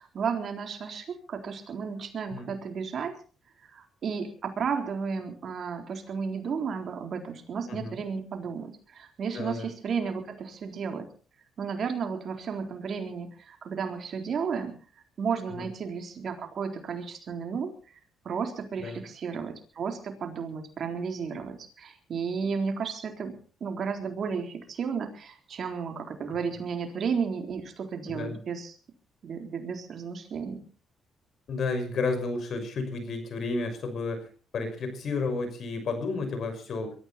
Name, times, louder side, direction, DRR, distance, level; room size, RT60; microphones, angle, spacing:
voice 1, 0.0-3.1 3.6-11.1 11.6-14.7 15.2-17.7 18.2-28.8 29.2-30.6, right 6 dB, 55° right, 4 dB, 3.9 m, -33 dB
voice 2, 9.3-9.7 15.5-15.7 18.8-19.0 28.1-28.4 31.5-34.2 34.5-36.9, left 3 dB, 60° left, 8 dB, 5.9 m, -32 dB
22.5 x 14.0 x 4.4 m, 0.39 s
cardioid pair, 90°, 0 cm